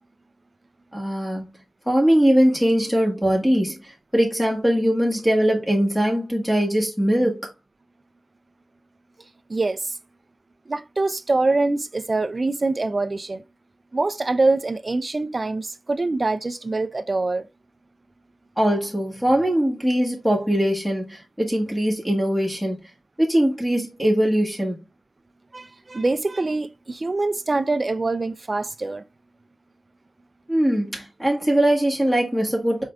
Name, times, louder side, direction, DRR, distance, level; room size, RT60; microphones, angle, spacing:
voice 1, 0.9-1.5 1.9-7.5 18.6-22.8 23.2-24.8 30.5-32.8, equal, 5° left, 1.4 m, -21 dB
voice 2, 9.5-9.9 10.7-13.4 13.9-17.5 25.5-29.0, right 3 dB, 30° right, 0.5 m, -24 dB
5.0 x 4.4 x 2.3 m
wide cardioid pair, 110°, 0 cm